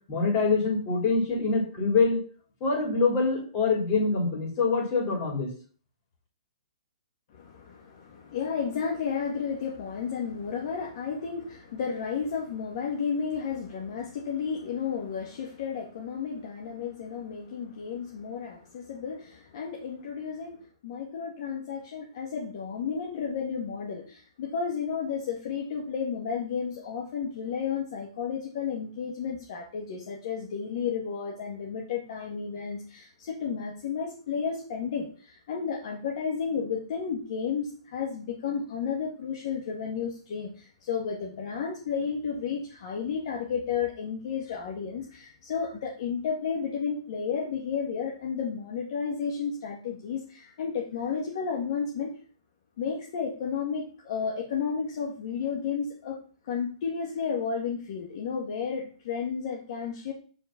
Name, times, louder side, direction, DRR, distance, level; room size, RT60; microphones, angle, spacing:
voice 1, 0.1-2.2 2.6-5.5, left 4 dB, 35° left, 0 dB, 3.2 m, -25 dB
voice 2, 7.3-52.1 52.8-56.2 56.4-60.1, left 6 dB, 55° left, -1 dB, 1.8 m, -32 dB
7.6 x 4.5 x 5.8 m, 0.41 s
hypercardioid pair, 155°, 3 cm